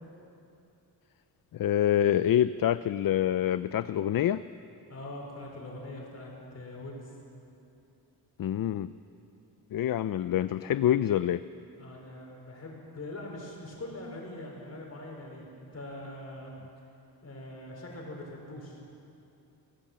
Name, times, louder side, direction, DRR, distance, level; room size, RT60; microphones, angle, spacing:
voice 1, 1.5-4.4 8.4-8.9 9.7-11.4, left 11 dB, 60° left, 14 dB, 0.5 m, -26 dB
voice 2, 4.9-7.2 11.8-16.5 17.2-18.8, left 1 dB, 40° left, -1 dB, 4.8 m, -42 dB
25.0 x 18.0 x 7.4 m, 2.7 s
wide cardioid pair, 175°, 40 cm